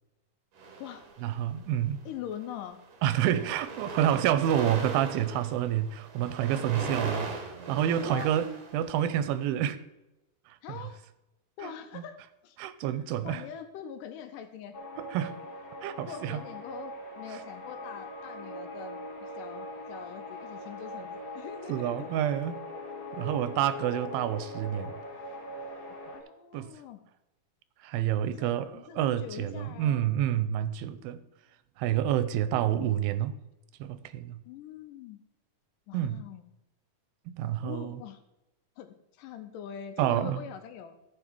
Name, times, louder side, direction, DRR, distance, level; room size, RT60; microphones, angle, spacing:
sound 1, 0.6-1.6 2.3-2.5 2.8-9.3, right 4 dB, 65° right, 3.0 m, -39 dB
voice 1, 1.2-2.0 3.0-7.3 7.7-8.5 8.7-9.8 10.5-10.6 11.6-12.0 12.6-13.4 15.0-15.3 15.8-16.4 21.7-22.6 23.1-25.0 26.5-26.7 27.8-31.2 31.8-33.4 33.8-34.4 35.9-36.2 37.3-38.0 40.0-40.4, right 11 dB, 90° right, 2.4 m, -28 dB
voice 2, 2.1-2.8 7.0-7.3 8.0-8.3 10.6-11.0 11.6-12.6 13.2-14.8 16.0-22.1 23.0-23.2 26.1-27.0 28.2-30.0 34.5-35.2 35.9-36.4 37.6-38.2 38.8-41.0, left 9 dB, 75° left, 2.1 m, -43 dB
sound 2, 14.7-26.2, left 1 dB, 40° left, 2.4 m, -41 dB
14.0 x 5.4 x 4.5 m
omnidirectional pair, 4.1 m